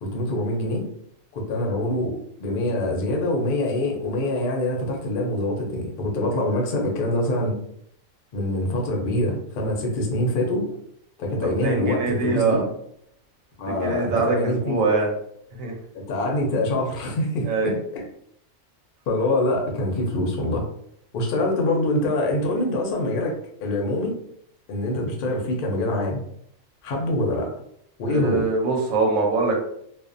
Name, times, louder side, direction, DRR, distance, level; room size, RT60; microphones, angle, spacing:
voice 1, 0.0-0.8 1.3-7.6 8.3-10.6 11.2-12.7 13.6-15.0 15.9-18.0 19.1-20.7 21.1-24.1 24.7-26.2 26.8-27.5 28.0-28.5, left 1 dB, 55° left, 0 dB, 0.6 m, -25 dB
voice 2, 11.4-12.6 13.7-15.1 15.5-15.7 17.4-17.8 28.1-29.6, right 3 dB, 80° right, 0 dB, 1.0 m, -23 dB
2.4 x 2.1 x 2.5 m, 0.70 s
omnidirectional pair, 1.4 m